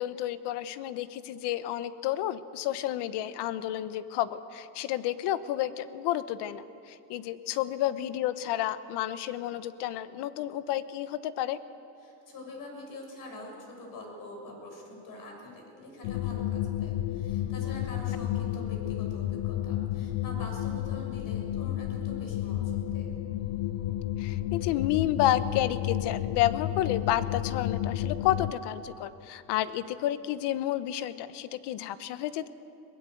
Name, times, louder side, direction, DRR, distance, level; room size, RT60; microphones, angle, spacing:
voice 1, 0.0-11.6 18.6-18.7 24.2-32.5, left 13 dB, 60° left, 13 dB, 1.1 m, -30 dB
voice 2, 12.0-23.1, left 2 dB, 45° left, 1 dB, 6.7 m, -45 dB
sound 1, 16.0-28.5, left 12 dB, 80° left, 1.0 m, -31 dB
22.0 x 21.0 x 8.0 m, 2.6 s
cardioid pair, 145°, 46 cm